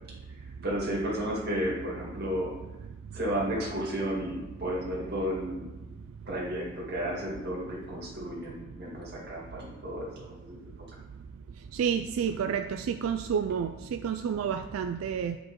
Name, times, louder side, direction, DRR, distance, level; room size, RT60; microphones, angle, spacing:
voice 1, 0.6-2.5 3.1-5.7 6.3-10.6, equal, 50° right, -4 dB, 2.0 m, -33 dB
voice 2, 11.7-15.4, right 7 dB, 85° right, 8 dB, 0.3 m, -30 dB
9.4 x 5.0 x 3.1 m, 1.1 s
head